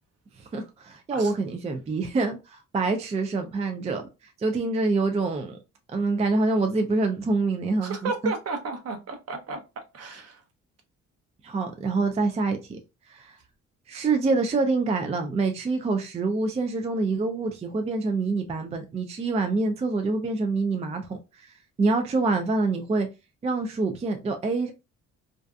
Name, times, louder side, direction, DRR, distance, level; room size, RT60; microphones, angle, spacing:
voice 1, 0.4-5.6 5.9-8.3 11.4-12.8 13.1-13.4 13.9-23.1 23.4-24.7, right 3 dB, 20° right, 0.4 m, -26 dB
voice 2, 7.8-9.6 9.9-10.4, right 4 dB, 55° right, 0.8 m, -33 dB
2.6 x 2.3 x 2.2 m
cardioid pair, 90°, 30 cm